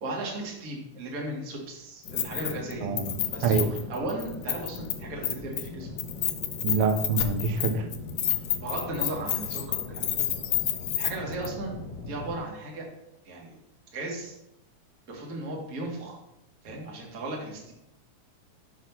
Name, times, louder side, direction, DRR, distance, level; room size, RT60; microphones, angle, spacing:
voice 1, 0.0-3.0 3.3-5.9 8.6-10.3 10.8-12.9 13.2-13.6 13.9-14.4 15.1-16.2 16.6-17.7, right 2 dB, 35° right, -1 dB, 1.7 m, -36 dB
sound 1, 2.0-12.4, left 3 dB, 55° left, 1.1 m, -41 dB
Keys jangling, 2.1-2.7 3.0-4.9 5.2-5.7 6.0-11.1 11.4-11.5, left 12 dB, 75° left, 1.4 m, -29 dB
voice 2, 2.8-3.1 3.4-3.7 6.6-7.9, right 5 dB, 70° right, 6 dB, 1.4 m, -25 dB
6.3 x 5.9 x 5.7 m, 0.86 s
omnidirectional pair, 3.4 m